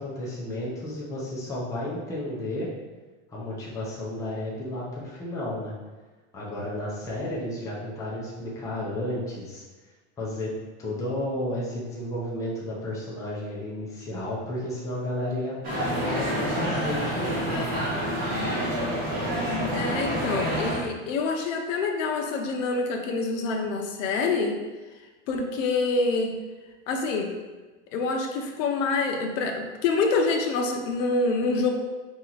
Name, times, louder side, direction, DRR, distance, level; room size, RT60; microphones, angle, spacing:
voice 1, 0.0-2.7 3.3-5.7 6.3-9.6 10.2-10.5 10.8-17.8, left 1 dB, 10° left, -6 dB, 0.6 m, -32 dB
sound 1, 15.6-20.8, equal, 25° right, 1.2 m, -28 dB
voice 2, 19.7-24.6 25.3-26.3 26.9-27.3 27.9-31.7, left 3 dB, 80° left, 3 dB, 0.8 m, -26 dB
4.3 x 3.0 x 3.9 m, 1.3 s
supercardioid pair, 170°, 38 cm